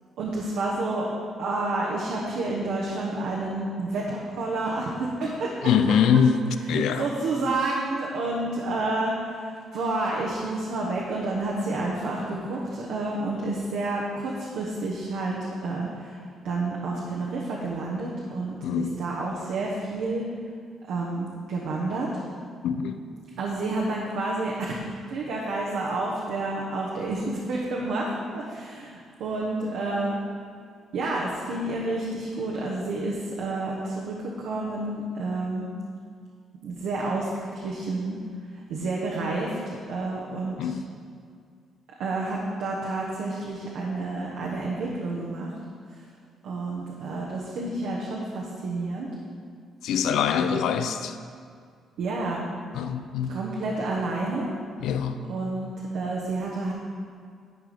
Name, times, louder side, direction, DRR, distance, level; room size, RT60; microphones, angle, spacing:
voice 1, 0.2-1.1 1.4-5.5 6.7-16.2 16.4-20.2 20.9-22.2 23.4-24.8 25.1-30.2 30.9-35.7 36.6-38.2 38.7-40.7 42.0-45.5 46.4-49.1 52.0-52.5 53.3-54.5 55.3-56.7, right 2 dB, 80° right, -3 dB, 1.1 m, -29 dB
voice 2, 5.6-7.1 18.6-19.0 22.6-23.0 40.6-40.8 49.8-51.2 52.7-53.4 54.8-55.2, left 7 dB, 80° left, 9 dB, 0.4 m, -24 dB
11.0 x 4.8 x 5.1 m, 2.2 s
cardioid pair, 90°, 0 cm